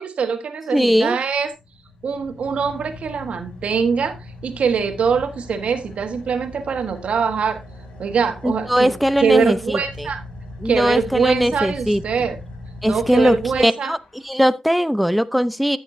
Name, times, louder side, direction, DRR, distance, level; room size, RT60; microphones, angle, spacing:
voice 1, 0.0-1.5 2.0-4.2 4.4-7.6 8.0-8.9 9.2-10.2 10.6-12.4 12.8-13.9, right 6 dB, 80° right, 1.4 m, -23 dB
voice 2, 0.7-1.2 8.4-10.1 10.6-12.0 12.8-15.8, equal, ahead, 0.6 m, -19 dB
Car / Idling, 1.3-14.3, left 2 dB, 90° left, 3.1 m, -39 dB
14.0 x 6.4 x 2.7 m
cardioid pair, 55°, 2 cm